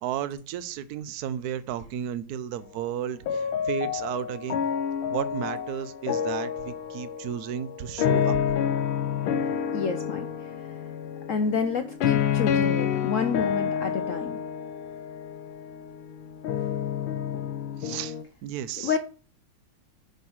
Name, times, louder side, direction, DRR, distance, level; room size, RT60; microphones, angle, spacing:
voice 1, 0.0-4.6 5.1-8.4 17.8-19.0, right 10 dB, 65° right, 14 dB, 1.1 m, -33 dB
sound 1, 3.3-18.2, left 8 dB, 90° left, 1.5 m, -29 dB
voice 2, 9.7-10.8 11.3-14.4 18.7-19.0, left 6 dB, 65° left, 8 dB, 0.8 m, -29 dB
9.6 x 4.6 x 6.3 m, 0.39 s
omnidirectional pair, 2.0 m